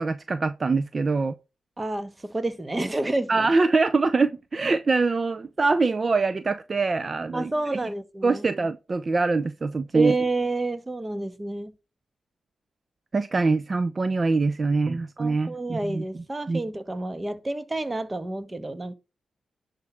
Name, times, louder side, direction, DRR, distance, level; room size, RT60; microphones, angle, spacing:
voice 1, 0.0-1.3 3.3-7.5 8.2-10.2 13.1-16.6, right 3 dB, 40° right, 0.6 m, -24 dB
voice 2, 1.8-3.5 7.3-8.4 9.9-11.7 15.2-18.9, right 2 dB, 25° right, 1.3 m, -29 dB
10.5 x 4.7 x 5.9 m
cardioid pair, 65°, 0 cm